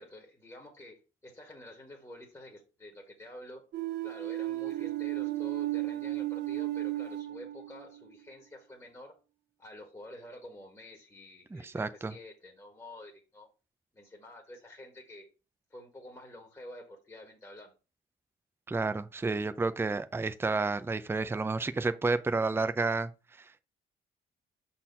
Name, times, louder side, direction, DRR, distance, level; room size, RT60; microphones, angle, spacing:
voice 1, 0.0-3.6 4.0-9.1 9.6-13.5 13.9-15.3 15.7-17.7, left 1 dB, 15° left, 1.7 m, -49 dB
sound 1, 3.7-8.0, right 16 dB, 60° right, 0.7 m, -34 dB
voice 2, 11.5-12.1 18.7-23.1, right 3 dB, 10° right, 0.5 m, -30 dB
5.8 x 4.3 x 5.5 m
cardioid pair, 90°, 20 cm